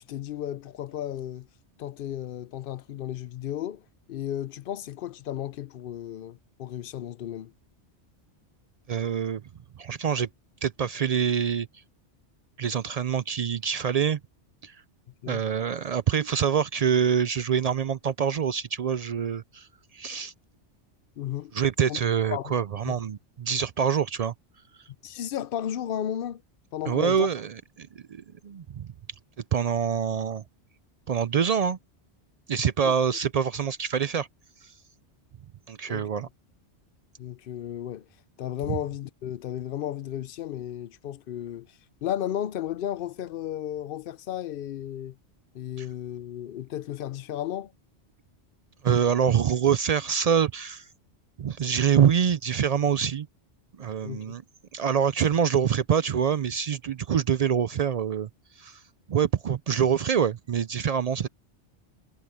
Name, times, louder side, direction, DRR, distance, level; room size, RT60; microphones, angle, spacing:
voice 1, 0.0-1.5 1.8-3.8 4.1-7.5 15.2-15.4 21.2-21.5 21.9-22.0 22.2-22.5 22.9-23.0 25.0-26.4 26.7-27.3 32.8-32.9 35.9-36.1 37.2-38.1 38.4-45.2 45.5-47.7 54.0-54.4, left 11 dB, 60° left, 0.7 m, -34 dB
voice 2, 8.9-9.4 9.8-10.3 10.6-11.7 12.6-14.2 14.6-14.8 15.3-19.7 19.9-20.3 21.5-24.3 26.9-28.9 29.5-30.4 31.1-31.8 32.5-34.3 35.7-36.3 38.7-38.8 48.8-50.9 51.4-53.3 53.8-54.4 54.7-58.3 58.6-58.8 59.1-61.3, right 7 dB, 65° right, 0.4 m, -25 dB
omnidirectional pair, 1.2 m